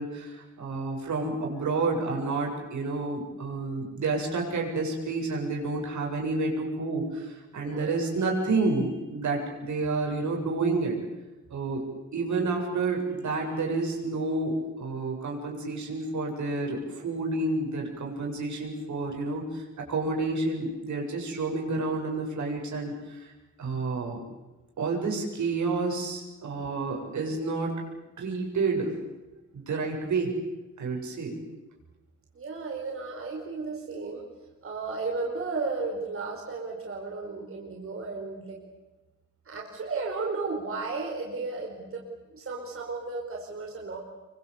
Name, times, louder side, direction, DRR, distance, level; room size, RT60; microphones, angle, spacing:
voice 1, 0.0-10.9 11.5-11.8 12.1-23.3 23.6-24.2 24.8-27.8 28.2-28.9 29.7-30.3 30.8-31.4, right 3 dB, 80° right, 0 dB, 7.5 m, -29 dB
voice 2, 7.5-8.1 32.3-34.3 34.6-38.6 39.4-42.0 42.3-44.0, right 3 dB, 50° right, 0 dB, 4.9 m, -34 dB
28.0 x 24.0 x 8.4 m, 1.1 s
wide cardioid pair, 145°, 29 cm